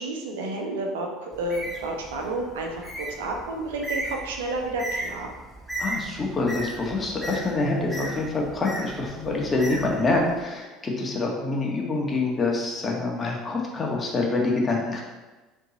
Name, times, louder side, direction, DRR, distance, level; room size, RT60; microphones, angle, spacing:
voice 1, 0.0-5.3, right 2 dB, 75° right, 1 dB, 1.0 m, -31 dB
Bird, 1.3-10.4, right 1 dB, 5° right, 2.0 m, -36 dB
voice 2, 5.8-15.0, left 3 dB, 25° left, -1 dB, 1.7 m, -26 dB
6.7 x 3.6 x 4.3 m, 1.2 s
hypercardioid pair, 65°, 0 cm